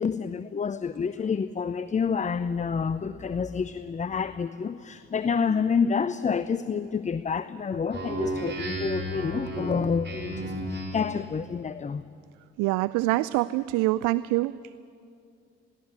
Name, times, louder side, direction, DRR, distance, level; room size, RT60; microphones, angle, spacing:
voice 1, 0.0-12.0, left 6 dB, 20° left, 0.6 m, -28 dB
Speech synthesizer, 7.9-11.2, right 1 dB, 30° right, 4.7 m, -33 dB
voice 2, 12.6-14.5, right 18 dB, 60° right, 0.5 m, -25 dB
22.0 x 15.5 x 9.4 m
figure-of-eight pair, 45°, 35 cm